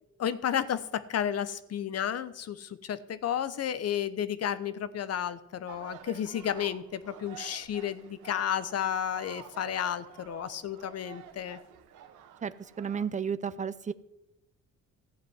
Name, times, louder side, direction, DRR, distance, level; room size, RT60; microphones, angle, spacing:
voice 1, 0.2-11.6, left 9 dB, 55° left, 15 dB, 0.9 m, -32 dB
sound 1, 5.7-13.1, right 9 dB, 90° right, 1.2 m, -50 dB
voice 2, 12.4-13.9, right 7 dB, 25° right, 15 dB, 0.6 m, -33 dB
15.0 x 5.0 x 9.5 m, 0.92 s
cardioid pair, 90°, 30 cm